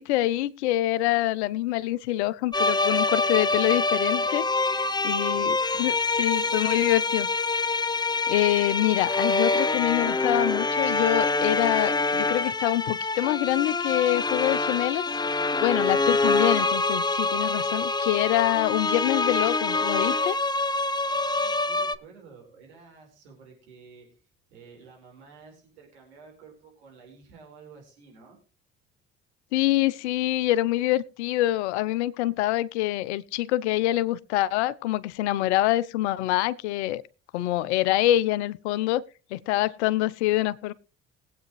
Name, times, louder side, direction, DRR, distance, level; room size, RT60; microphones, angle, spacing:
voice 1, 0.0-4.5 5.0-7.3 8.3-15.0 15.6-20.4 29.5-37.0 37.3-39.0 39.3-40.7, left 15 dB, 80° left, 0.7 m, -25 dB
sound 1, 2.5-21.9, left 3 dB, 10° left, 0.7 m, -25 dB
voice 2, 5.1-5.6 21.1-24.2 24.5-28.4, right 5 dB, 85° right, 4.6 m, -51 dB
21.0 x 8.5 x 3.1 m
hypercardioid pair, 55°, 33 cm